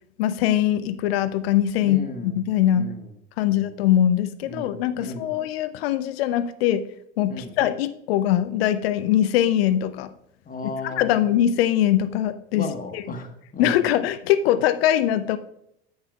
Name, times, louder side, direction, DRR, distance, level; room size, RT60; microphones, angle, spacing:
voice 1, 0.2-2.9 3.4-6.8 7.2-10.1 10.8-12.7 12.9-13.0 13.6-15.4, left 11 dB, 65° left, 13 dB, 0.6 m, -22 dB
voice 2, 1.8-2.3 2.7-3.1 3.5-3.7 4.4-5.3 7.3-7.6 10.5-11.2 12.5-13.8, left 3 dB, 25° left, 5 dB, 1.3 m, -35 dB
10.0 x 8.0 x 2.4 m, 0.75 s
figure-of-eight pair, 65°, 33 cm